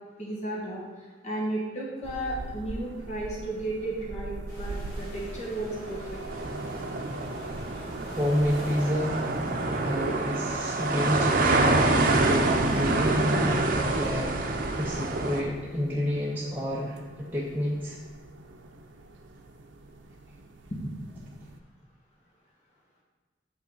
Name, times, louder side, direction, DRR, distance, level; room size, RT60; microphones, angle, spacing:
voice 1, 0.2-0.8 1.2-6.2 20.7-20.8 21.2-21.3, right 1 dB, 40° left, -4 dB, 1.7 m, -34 dB
sound 1, 2.0-21.6, right 2 dB, 85° right, 0.5 m, -43 dB
sound 2, 4.5-13.0, left 1 dB, 20° left, 2.4 m, -47 dB
sound 3, 6.3-15.4, right 2 dB, 50° right, 0.7 m, -26 dB
voice 2, 8.0-9.3 9.7-18.0, equal, 10° right, -5 dB, 0.6 m, -30 dB
7.5 x 5.5 x 4.0 m, 1.4 s
head